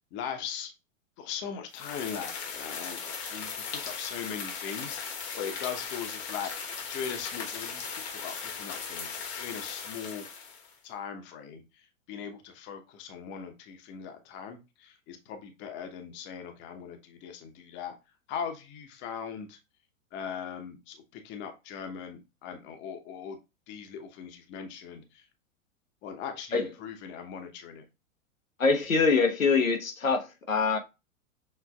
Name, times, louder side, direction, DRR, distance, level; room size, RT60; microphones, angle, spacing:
voice 1, 0.1-0.7 1.2-6.5 6.9-10.2 10.8-11.6 12.1-17.9 18.3-19.6 20.1-23.4 23.7-25.2 26.0-27.8, left 7 dB, 30° left, 0.9 m, -40 dB
sound 1, 1.7-10.7, left 6 dB, 55° left, 1.2 m, -38 dB
voice 2, 28.6-30.8, left 4 dB, 80° left, 1.1 m, -24 dB
6.6 x 3.3 x 2.3 m
figure-of-eight pair, 100°, 40 cm